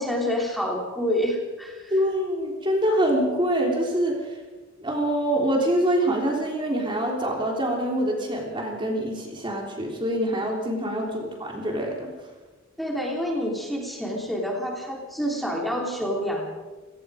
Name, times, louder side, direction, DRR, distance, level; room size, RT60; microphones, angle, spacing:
voice 1, 0.0-1.9 12.8-16.5, equal, ahead, -1 dB, 3.4 m, -28 dB
voice 2, 1.9-4.2 4.8-12.1, right 1 dB, 25° right, 0 dB, 3.4 m, -25 dB
29.5 x 18.5 x 5.1 m, 1.3 s
head